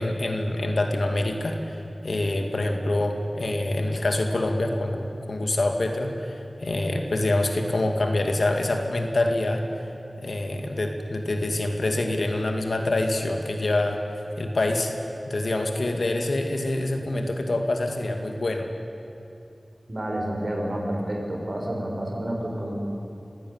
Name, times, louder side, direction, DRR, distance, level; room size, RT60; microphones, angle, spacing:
voice 1, 0.0-9.6 10.2-14.0 14.4-14.9 15.3-18.7, left 2 dB, 75° left, 4 dB, 2.3 m, -26 dB
voice 2, 19.9-22.8, right 1 dB, 45° right, -1 dB, 6.3 m, -29 dB
24.0 x 15.5 x 9.7 m, 2.7 s
wide cardioid pair, 50°, 0 cm